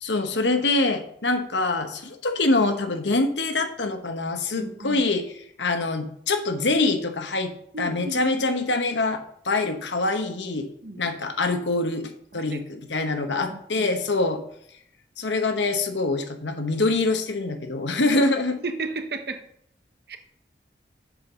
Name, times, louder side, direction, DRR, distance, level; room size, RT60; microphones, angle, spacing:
voice 1, 0.0-5.3 5.6-7.5 7.8-10.7 11.0-14.4 15.2-18.6, left 2 dB, 85° left, 7 dB, 1.1 m, -25 dB
voice 2, 4.5-5.1 7.7-8.4 10.8-11.0 12.3-13.0 13.5-13.9 18.6-19.4 20.1-20.2, right 3 dB, 60° right, 7 dB, 1.0 m, -34 dB
7.3 x 5.5 x 6.1 m, 0.68 s
head